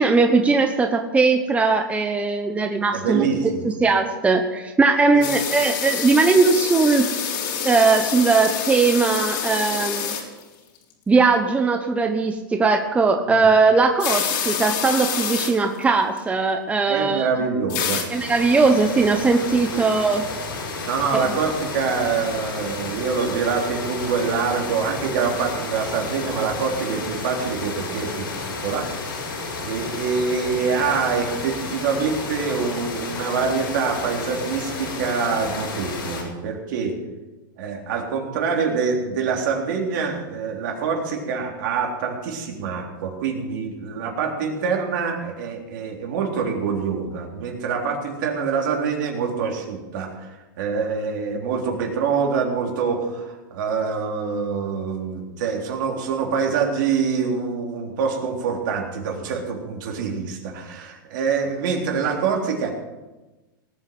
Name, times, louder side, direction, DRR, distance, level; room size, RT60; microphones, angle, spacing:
voice 1, 0.0-7.1 7.6-10.1 11.1-17.2 18.1-20.2 21.1-21.2, right 4 dB, 10° right, 5 dB, 1.0 m, -19 dB
voice 2, 2.9-3.7 5.1-5.3 13.3-13.5 16.9-18.0 19.7-19.8 20.9-28.3 28.6-28.9 29.6-36.9 37.6-62.7, right 5 dB, 65° right, 1 dB, 3.7 m, -25 dB
sound 1, 5.2-10.4 10.7-10.9 14.0-15.5 15.8-15.9 16.2-16.3 17.7-18.1 18.5-18.6, left 8 dB, 65° left, 3.6 m, -27 dB
sound 2, 18.1-36.2, left 3 dB, 85° left, 5.6 m, -32 dB
18.5 x 8.9 x 6.0 m, 1.1 s
hypercardioid pair, 130°, 11 cm